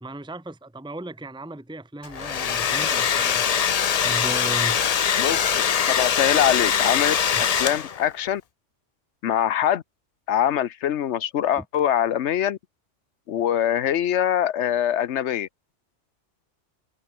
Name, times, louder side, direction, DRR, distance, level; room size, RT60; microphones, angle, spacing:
voice 1, 0.0-3.5 4.0-4.8 7.3-7.4 11.6-11.7, right 1 dB, 5° right, 1.4 m, -36 dB
Domestic sounds home sounds, 2.0-8.1, left 8 dB, 45° left, 0.5 m, -22 dB
voice 2, 5.2-7.1 7.6-8.4 9.2-9.8 10.3-12.6 13.3-15.5, left 10 dB, 70° left, 1.0 m, -23 dB
open air
omnidirectional pair, 1.3 m